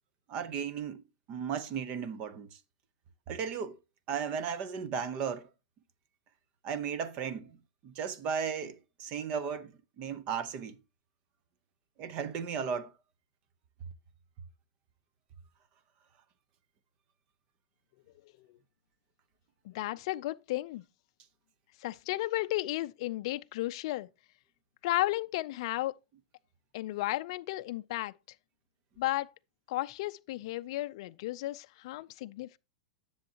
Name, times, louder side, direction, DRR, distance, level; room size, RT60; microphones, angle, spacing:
voice 1, 0.3-2.6 3.3-3.8 4.1-5.5 6.6-7.5 7.8-10.8 12.0-12.9, right 7 dB, 30° right, 0.8 m, -35 dB
voice 2, 19.7-20.8 21.8-24.1 24.8-25.9 26.7-28.1 29.0-29.3 29.7-32.6, left 17 dB, 45° left, 0.4 m, -34 dB
10.5 x 7.1 x 2.8 m
supercardioid pair, 170°, 4 cm